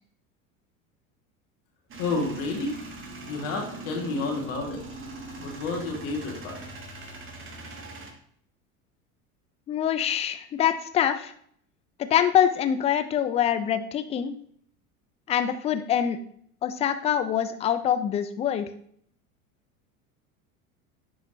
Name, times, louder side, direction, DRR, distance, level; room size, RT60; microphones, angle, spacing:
Male speech man speaking / Vehicle / Engine starting, 1.9-8.1, right 2 dB, 30° right, 1.3 m, -41 dB
voice 1, 2.0-2.8 3.2-4.8 5.4-6.6, left 3 dB, 65° left, 1 dB, 2.0 m, -30 dB
voice 2, 9.7-11.3 12.0-14.3 15.3-16.2 16.6-18.7, left 9 dB, 15° left, 10 dB, 0.3 m, -24 dB
10.0 x 4.0 x 3.0 m, 0.63 s
hypercardioid pair, 75°, 44 cm